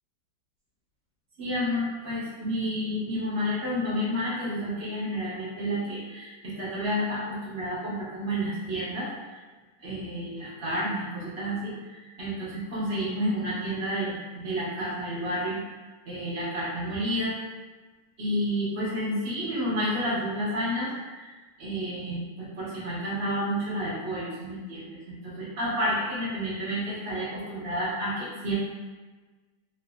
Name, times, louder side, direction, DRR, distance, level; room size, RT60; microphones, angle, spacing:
voice 1, 1.4-9.1 9.8-15.6 16.1-17.3 18.2-20.9 21.2-28.5, equal, 50° right, -8 dB, 0.8 m, -30 dB
3.3 x 3.3 x 2.2 m, 1.3 s
omnidirectional pair, 2.4 m